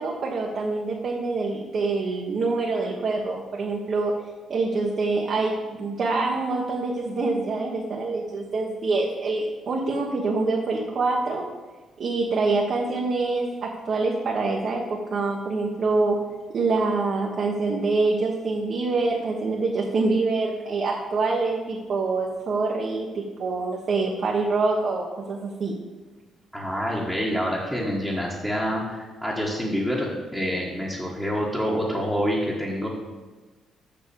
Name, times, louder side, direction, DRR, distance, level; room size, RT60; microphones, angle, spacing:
voice 1, 0.0-4.1 4.5-11.5 12.0-16.2 16.5-25.7, right 3 dB, 45° right, -3 dB, 1.2 m, -25 dB
voice 2, 26.5-32.9, equal, 5° left, -5 dB, 1.4 m, -27 dB
7.0 x 6.6 x 6.9 m, 1.3 s
cardioid pair, 135°, 0 cm